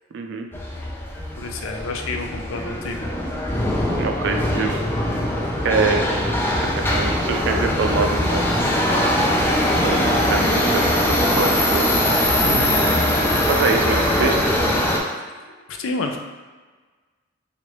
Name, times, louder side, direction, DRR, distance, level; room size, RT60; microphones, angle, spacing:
voice 1, 0.1-0.5 4.0-4.8 5.6-6.1 6.8-8.5 9.7-10.0 10.3-11.9 13.5-14.4, right 4 dB, 65° right, 4 dB, 0.4 m, -24 dB
Subway metro underground, 0.5-15.0, left 1 dB, 10° left, 0.3 m, -21 dB
voice 2, 1.4-3.1 12.4-13.0 15.1-16.2, left 3 dB, 85° left, 4 dB, 0.4 m, -30 dB
3.1 x 2.5 x 3.0 m, 1.4 s
head